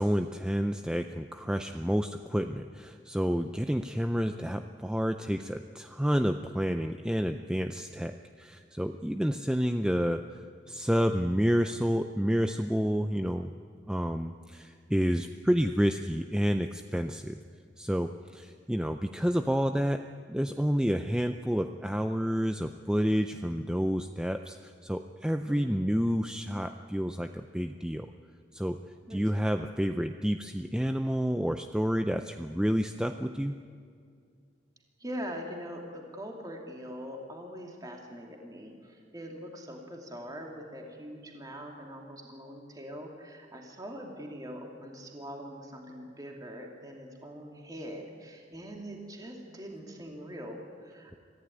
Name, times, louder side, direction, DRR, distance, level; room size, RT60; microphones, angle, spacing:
voice 1, 0.0-10.4 10.7-13.5 13.9-17.4 17.8-20.0 20.3-28.1 28.5-28.8 29.1-33.6, equal, 5° right, 7 dB, 0.5 m, -29 dB
voice 2, 29.1-29.4 35.0-51.2, equal, 20° right, 1 dB, 2.6 m, -42 dB
24.5 x 15.0 x 9.4 m, 2.2 s
head